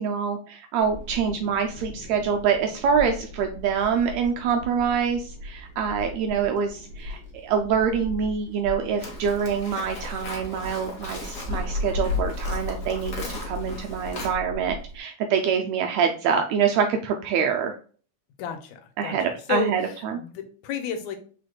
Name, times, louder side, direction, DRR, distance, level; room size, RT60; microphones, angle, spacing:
voice 1, 0.0-17.7 19.0-20.2, right 6 dB, 80° right, 4 dB, 1.6 m, -25 dB
Wind, 0.8-15.0, left 2 dB, 45° right, 2.1 m, -36 dB
Livestock farm animals working animals, 9.0-14.3, left 1 dB, 60° left, 0.9 m, -38 dB
voice 2, 18.4-19.7 20.1-21.2, left 6 dB, 80° left, 6 dB, 2.1 m, -31 dB
5.0 x 4.0 x 2.3 m, 0.42 s
omnidirectional pair, 3.4 m